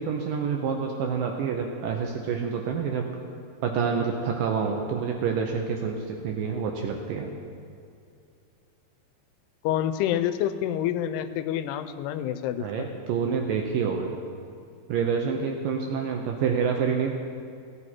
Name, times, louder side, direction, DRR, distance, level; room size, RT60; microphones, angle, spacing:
voice 1, 0.0-3.1 3.6-7.3 12.6-14.2 14.9-17.1, right 6 dB, 80° right, 2 dB, 2.0 m, -27 dB
voice 2, 9.6-12.9, left 11 dB, 85° left, 11 dB, 2.6 m, -28 dB
16.0 x 8.8 x 4.4 m, 2.4 s
omnidirectional pair, 4.6 m